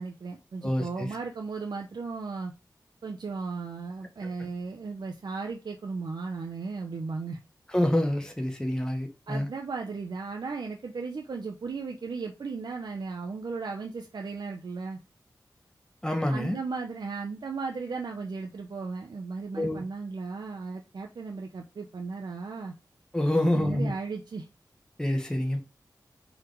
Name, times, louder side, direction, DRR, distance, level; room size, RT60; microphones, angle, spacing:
voice 1, 0.0-2.5 3.0-7.4 9.3-15.0 16.3-22.7 23.3-24.5, right 4 dB, 80° right, 0.8 m, -36 dB
voice 2, 0.6-1.1 4.2-4.5 7.7-9.5 16.0-16.6 19.6-19.8 23.1-23.9 25.0-25.6, left 1 dB, 10° left, 1.4 m, -27 dB
4.6 x 4.1 x 4.9 m
cardioid pair, 55°, 7 cm